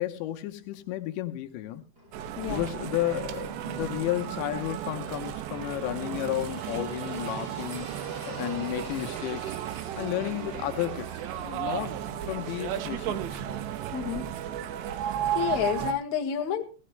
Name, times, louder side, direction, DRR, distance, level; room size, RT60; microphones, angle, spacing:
voice 1, 0.0-1.8 2.5-9.6 10.0-13.4, left 14 dB, 80° left, 3.1 m, -33 dB
sound 1, 2.0-13.5, right 1 dB, 25° right, 2.6 m, -49 dB
sound 2, 2.1-15.9, right 10 dB, 80° right, 3.1 m, -34 dB
voice 2, 13.9-14.3 15.3-16.6, left 10 dB, 65° left, 2.0 m, -29 dB
17.0 x 14.5 x 3.2 m
omnidirectional pair, 5.2 m